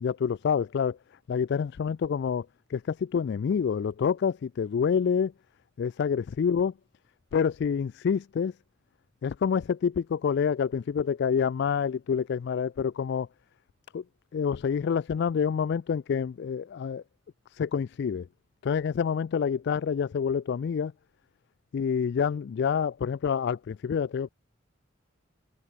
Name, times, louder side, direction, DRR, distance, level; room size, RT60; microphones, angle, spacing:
voice 1, 0.0-1.0 1.3-5.3 5.8-6.7 7.3-8.5 9.2-13.3 13.9-14.0 14.3-17.0 17.5-18.3 18.6-20.9 21.7-24.3, left 6 dB, 55° left, 0.3 m, -27 dB
head